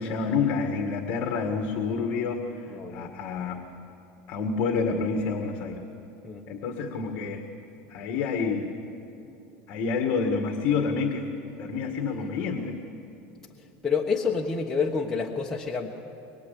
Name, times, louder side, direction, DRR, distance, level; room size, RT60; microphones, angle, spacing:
voice 1, 0.0-3.6 4.3-5.8 6.5-7.4 7.9-8.7 9.7-11.3 11.6-12.8, left 5 dB, 40° left, 4 dB, 2.0 m, -28 dB
voice 2, 2.7-3.1 6.2-6.4 13.8-15.9, left 5 dB, 10° left, -2 dB, 1.2 m, -28 dB
24.5 x 23.0 x 8.5 m, 3.0 s
cardioid pair, 170°, 5 cm